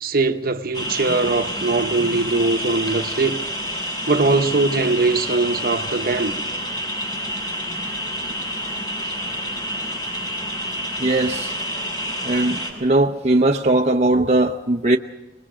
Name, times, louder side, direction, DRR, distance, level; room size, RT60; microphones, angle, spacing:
voice 1, 0.0-3.4 4.1-6.3, right 3 dB, 55° right, 1.1 m, -21 dB
sound 1, 0.7-12.7, equal, 25° left, 6.8 m, -28 dB
voice 2, 11.0-11.5 12.2-15.0, right 2 dB, 40° right, 0.8 m, -19 dB
25.5 x 21.5 x 5.0 m
head